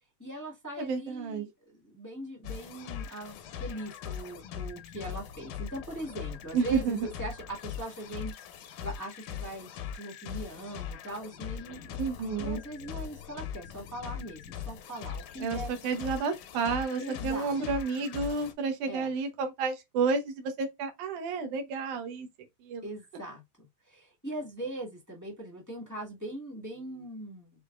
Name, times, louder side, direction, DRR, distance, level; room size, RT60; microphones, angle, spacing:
voice 1, 0.2-9.7 9.9-12.0 12.3-15.7 17.0-17.5 18.9-19.1 22.8-27.5, right 1 dB, 20° left, 0.5 m, -41 dB
voice 2, 0.8-1.5 6.5-7.1 12.0-12.6 15.4-22.3 22.6-22.8, right 4 dB, 80° right, 2.4 m, -31 dB
sound 1, 2.4-18.5, left 8 dB, 85° left, 2.2 m, -41 dB
5.5 x 3.6 x 2.4 m
omnidirectional pair, 3.5 m